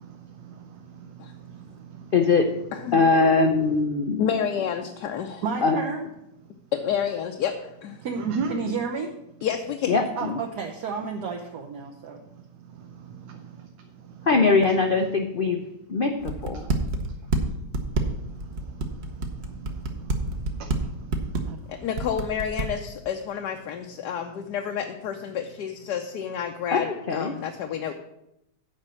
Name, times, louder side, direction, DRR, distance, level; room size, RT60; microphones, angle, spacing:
voice 1, 0.0-2.1 8.2-8.6 12.8-13.3 14.2-14.3 16.6-16.7 18.1-21.2, right 5 dB, 90° right, 3 dB, 1.5 m, -37 dB
voice 2, 2.1-2.5 2.9-4.3 5.6-5.8 9.9-10.4 14.3-15.6 15.9-16.6 26.7-27.4, left 4 dB, 90° left, 5 dB, 0.4 m, -22 dB
voice 3, 2.7-3.0 4.2-5.4 6.7-8.0 9.4-10.0 21.7-27.9, left 8 dB, 70° left, 4 dB, 1.2 m, -29 dB
voice 4, 5.4-6.0 8.0-8.2 8.5-9.1 10.2-12.2 21.5-21.6, right 5 dB, 65° right, 0 dB, 1.4 m, -31 dB
sound 1, 16.2-17.4 17.7-20.8 21.1-21.6 22.0-22.7, right 2 dB, 45° right, 1.0 m, -26 dB
8.8 x 5.2 x 7.5 m, 0.84 s
omnidirectional pair, 1.9 m